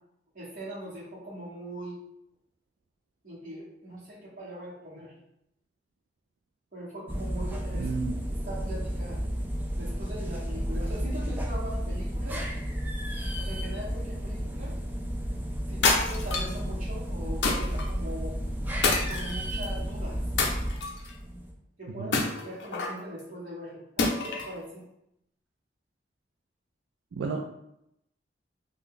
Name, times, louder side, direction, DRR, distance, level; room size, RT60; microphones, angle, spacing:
voice 1, 0.3-2.0 3.2-5.1 6.7-7.9 8.4-9.2 9.8-12.4 13.4-14.7 15.7-18.3 19.1-20.2 21.8-22.1 22.4-24.8, equal, 45° right, -8 dB, 1.3 m, -41 dB
sound 1, 7.1-21.5, equal, 10° right, 0.3 m, -32 dB
voice 2, 7.7-8.2 22.0-22.2 27.1-27.4, right 4 dB, 90° right, 1 dB, 0.3 m, -32 dB
sound 2, 15.8-16.6 17.4-17.9 18.8-19.7 20.4-21.1 22.1-23.0 24.0-24.5, left 3 dB, 70° left, 0.5 m, -27 dB
2.6 x 2.3 x 3.5 m, 0.80 s
head